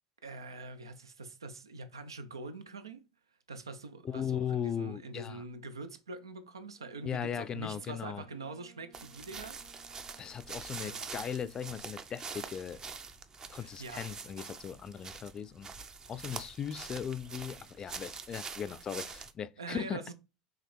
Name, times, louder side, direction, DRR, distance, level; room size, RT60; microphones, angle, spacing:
voice 1, 0.2-3.0 3.5-9.6 10.8-11.1 13.5-14.1 19.6-20.1, right 3 dB, 90° right, 0.5 m, -44 dB
voice 2, 4.0-5.4 7.0-8.2 10.2-12.8 13.5-15.7 16.1-20.0, left 8 dB, 30° left, 0.4 m, -38 dB
Wind instrument woodwind instrument, 6.8-11.1, right 5 dB, 55° right, 0.8 m, -61 dB
sound 1, 8.9-19.3, right 5 dB, 30° right, 0.5 m, -45 dB
4.7 x 2.9 x 3.1 m
hypercardioid pair, 80°, 2 cm